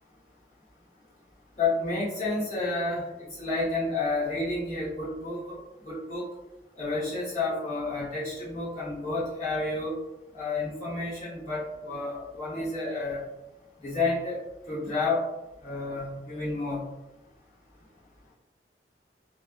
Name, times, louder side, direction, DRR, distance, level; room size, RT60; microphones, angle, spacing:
voice 1, 1.6-5.6 5.9-6.3 6.8-10.0 10.3-13.2 13.8-15.2 15.6-16.9, left 3 dB, 40° left, -10 dB, 1.2 m, -30 dB
2.5 x 2.2 x 2.3 m, 0.98 s
head